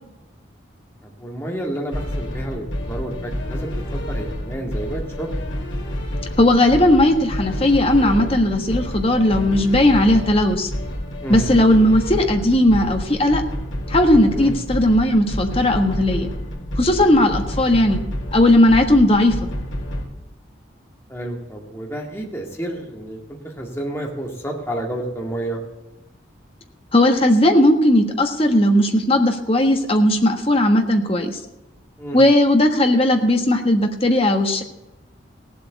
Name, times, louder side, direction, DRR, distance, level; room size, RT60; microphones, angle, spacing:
voice 1, 1.0-5.3 11.2-11.4 14.4-14.5 21.1-23.2 23.4-25.6 32.0-32.2, right 1 dB, 10° left, 0 dB, 2.0 m, -30 dB
sound 1, 1.9-20.0, equal, 75° left, 3.0 m, -29 dB
voice 2, 6.4-10.7 11.3-13.4 13.9-16.3 16.8-18.0 18.3-19.4 26.9-31.3 32.1-34.6, left 1 dB, 30° left, 5 dB, 1.5 m, -16 dB
16.5 x 7.8 x 8.3 m, 0.95 s
head